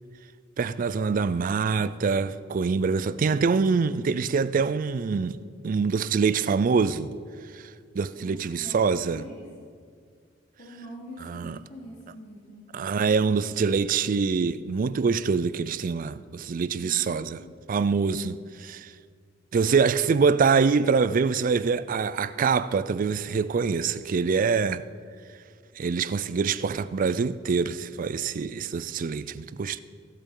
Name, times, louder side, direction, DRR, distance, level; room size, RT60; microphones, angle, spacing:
voice 1, 0.6-5.4 5.6-7.1 7.5-7.7 7.9-9.2 11.3-11.6 12.7-17.4 17.7-18.4 18.6-18.9 19.5-24.9 25.8-29.8, right 5 dB, 45° right, 0.4 m, -25 dB
voice 2, 8.2-9.5 10.6-12.6 16.8-17.2 18.2-18.3, equal, 40° left, 1.4 m, -44 dB
16.5 x 8.2 x 3.8 m
head